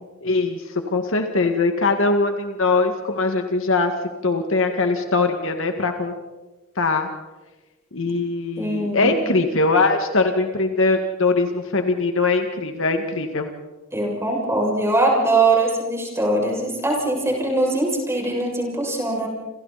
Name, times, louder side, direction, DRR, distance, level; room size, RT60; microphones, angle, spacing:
voice 1, 0.2-3.9 4.2-6.1 6.8-7.1 7.9-13.5, left 3 dB, 65° left, 5 dB, 2.0 m, -21 dB
voice 2, 8.6-9.1 13.9-19.3, right 2 dB, 15° right, -1 dB, 7.0 m, -21 dB
28.5 x 28.5 x 4.3 m, 1.1 s
head